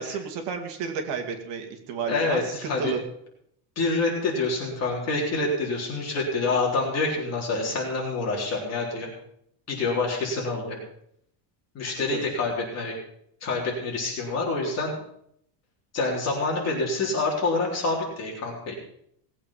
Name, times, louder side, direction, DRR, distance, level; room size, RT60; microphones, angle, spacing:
voice 1, 0.0-3.0 12.1-12.2, right 6 dB, 55° right, 4 dB, 2.4 m, -32 dB
voice 2, 2.1-2.9 3.8-9.1 9.7-10.8 11.7-12.9 13.4-15.0 15.9-18.7, left 3 dB, 30° left, -2 dB, 3.7 m, -27 dB
18.5 x 8.5 x 5.7 m, 0.71 s
cardioid pair, 175°, 50 cm